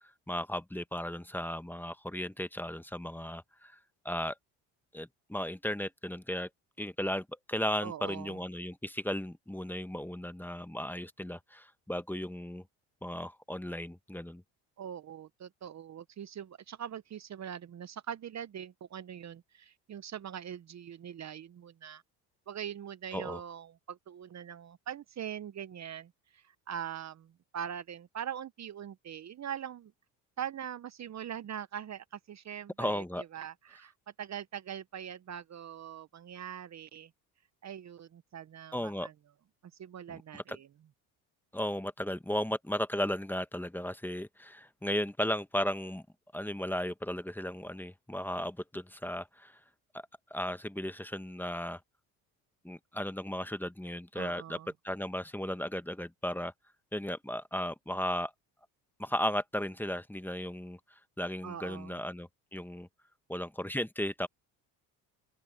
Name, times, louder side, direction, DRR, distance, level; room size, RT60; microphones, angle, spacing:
voice 1, 0.3-3.8 4.0-4.3 4.9-6.5 6.8-12.6 13.0-14.4 23.1-23.4 32.8-33.2 38.7-39.1 40.1-40.6 41.5-46.0 46.3-49.6 49.9-50.0 50.3-51.8 52.6-54.6 54.8-56.5 56.9-58.3 59.0-60.8 61.2-62.9 63.3-64.3, equal, 5° left, 1.3 m, -35 dB
voice 2, 7.8-8.4 14.8-22.0 22.5-29.9 30.4-33.9 34.2-37.1 37.6-39.1 39.8-40.7 54.1-54.7 61.4-62.0, right 9 dB, 40° right, 0.9 m, -42 dB
open air
supercardioid pair, 70°, 40 cm